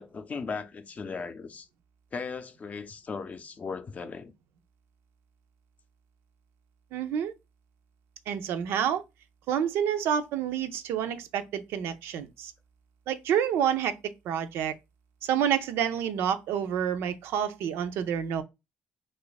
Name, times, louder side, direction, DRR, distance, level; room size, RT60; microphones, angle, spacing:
voice 1, 0.0-1.7 2.1-4.3, left 5 dB, 35° left, 0.5 m, -37 dB
voice 2, 6.9-7.3 8.3-9.0 9.5-12.5 13.1-14.0 14.2-14.7 15.2-18.4, right 9 dB, 80° right, 0.4 m, -28 dB
2.5 x 2.4 x 3.9 m
cardioid pair, 85°, 4 cm